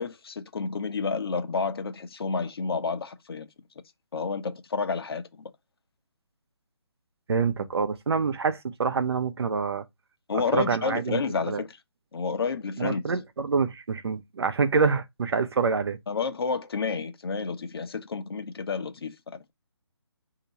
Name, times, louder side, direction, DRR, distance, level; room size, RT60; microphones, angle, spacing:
voice 1, 0.0-3.5 4.1-5.5 10.3-11.8 12.1-13.0 16.1-19.5, left 5 dB, 60° left, 0.9 m, -30 dB
voice 2, 7.3-9.8 10.5-11.2 11.5-11.6 12.8-16.0, right 5 dB, 65° right, 0.7 m, -26 dB
4.5 x 2.9 x 4.0 m
hypercardioid pair, 160°, 14 cm